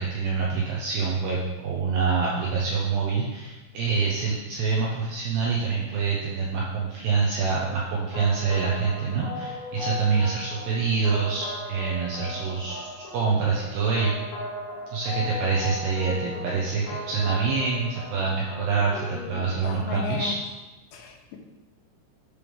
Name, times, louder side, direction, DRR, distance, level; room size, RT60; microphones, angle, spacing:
voice 1, 0.0-14.1 14.9-20.3, right 5 dB, 80° right, -4 dB, 2.4 m, -26 dB
sound 1, 7.6-19.2, left 1 dB, 60° left, 4.0 m, -37 dB
voice 2, 16.1-16.6 18.8-20.3 20.9-21.4, left 6 dB, 85° left, 1 dB, 3.7 m, -36 dB
10.0 x 3.4 x 5.4 m, 1.1 s
omnidirectional pair, 5.9 m